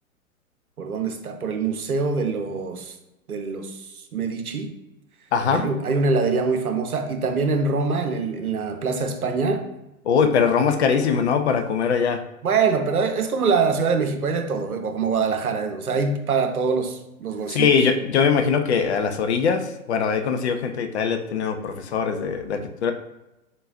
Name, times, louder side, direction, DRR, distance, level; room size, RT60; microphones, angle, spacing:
voice 1, 0.8-2.9 3.3-4.7 5.5-9.7 12.4-17.7, right 4 dB, 80° right, 0.8 m, -24 dB
voice 2, 5.3-5.6 10.0-12.2 17.5-22.9, left 6 dB, 50° left, 0.6 m, -21 dB
3.9 x 3.7 x 2.6 m
figure-of-eight pair, 110°, 43 cm